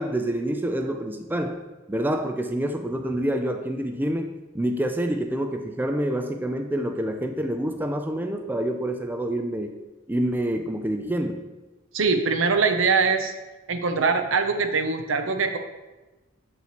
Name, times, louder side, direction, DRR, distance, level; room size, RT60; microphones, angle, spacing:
voice 1, 0.0-9.8 10.1-11.5, right 1 dB, 10° right, 6 dB, 0.4 m, -27 dB
voice 2, 11.9-13.3 13.7-15.6, right 4 dB, 80° right, 7 dB, 0.7 m, -22 dB
7.6 x 5.7 x 3.0 m, 1.1 s
head